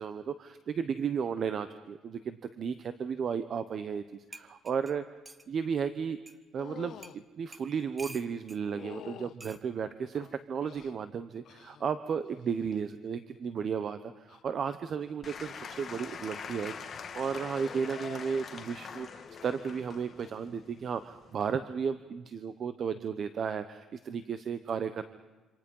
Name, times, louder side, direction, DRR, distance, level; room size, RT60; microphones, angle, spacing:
voice 1, 0.0-5.0 5.5-6.2 6.5-7.0 7.4-16.7 17.1-25.0, right 6 dB, 40° right, 11 dB, 0.9 m, -34 dB
sound 1, 3.9-4.0 4.3-5.5 6.3-6.4 7.0-7.2 7.5-8.6 9.4-9.6 10.7-11.0, right 2 dB, 10° right, 1.1 m, -49 dB
sound 2, 6.6-7.2 8.6-9.4 10.1-11.0 11.5-11.9 12.2-12.7 14.2-14.4, left 10 dB, 55° left, 0.9 m, -48 dB
Applause / Crowd, 15.2-21.5, left 6 dB, 35° left, 2.1 m, -44 dB
27.5 x 26.5 x 5.5 m, 1.3 s
cardioid pair, 150°, 0 cm